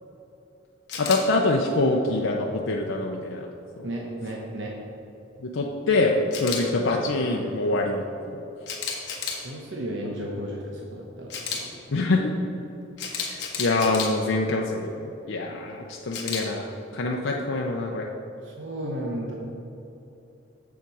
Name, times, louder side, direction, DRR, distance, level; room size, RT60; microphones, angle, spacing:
Camera, 0.9-1.2 6.3-6.6 8.7-9.4 11.3-11.6 13.0-14.1 16.1-16.4, left 6 dB, 60° left, 1.3 m, -31 dB
voice 1, 1.0-3.5 3.8-3.9 5.4-8.4 11.9-12.3 13.0-18.1, left 2 dB, 85° left, 0 dB, 0.6 m, -25 dB
voice 2, 3.8-4.7 9.4-11.7 18.4-19.3, right 1 dB, 70° right, -2 dB, 1.0 m, -33 dB
7.4 x 7.1 x 4.7 m, 2.9 s
head